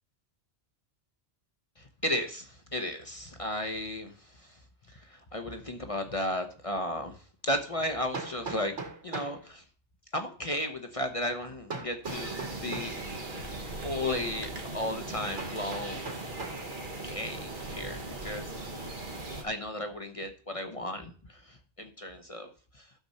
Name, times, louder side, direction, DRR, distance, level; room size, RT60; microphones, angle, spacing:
voice 1, 1.8-4.6 4.9-8.8 9.0-9.6 10.1-13.4 13.8-16.2 17.0-18.5 19.4-22.5 22.7-22.9, left 1 dB, 30° left, 5 dB, 0.9 m, -35 dB
Hammer, 6.5-6.6 8.1-9.4 11.7-13.0 15.4-16.6, right 3 dB, 85° right, 2.8 m, -39 dB
sound 1, 12.0-19.4, right 2 dB, 45° right, 1.6 m, -39 dB
12.0 x 6.9 x 4.2 m, 0.41 s
omnidirectional pair, 1.2 m